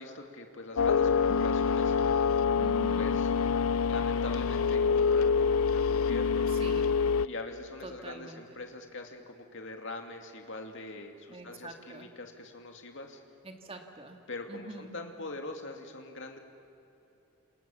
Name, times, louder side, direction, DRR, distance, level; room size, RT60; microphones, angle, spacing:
voice 1, 0.0-2.0 3.0-3.3 3.9-6.5 7.2-13.2 14.3-16.4, left 2 dB, 55° left, 4 dB, 2.5 m, -42 dB
sound 1, 0.8-7.3, left 5 dB, 75° left, 0.5 m, -26 dB
voice 2, 2.6-3.2 6.5-7.0 7.8-8.6 11.3-12.1 13.4-14.2 14.5-14.9, right 2 dB, 25° right, 4 dB, 2.0 m, -45 dB
28.5 x 27.5 x 7.3 m, 2.9 s
head